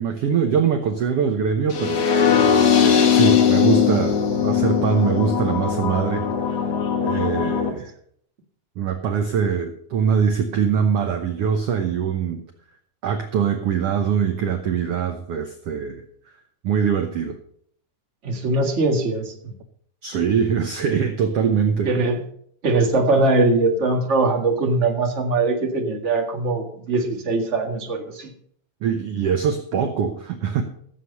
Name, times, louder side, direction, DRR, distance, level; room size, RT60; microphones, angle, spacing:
voice 1, 0.0-2.1 2.7-6.3 7.0-7.9 8.8-12.4 13.0-16.0 16.6-17.4 20.0-21.9 28.8-30.6, right 7 dB, 65° right, 6 dB, 1.6 m, -23 dB
sound 1, 1.7-7.7, left 7 dB, 65° left, 3.1 m, -19 dB
voice 2, 18.2-19.5 21.8-22.2 22.6-28.3, right 2 dB, 30° right, 2 dB, 1.7 m, -21 dB
14.5 x 7.7 x 5.5 m, 0.63 s
omnidirectional pair, 3.6 m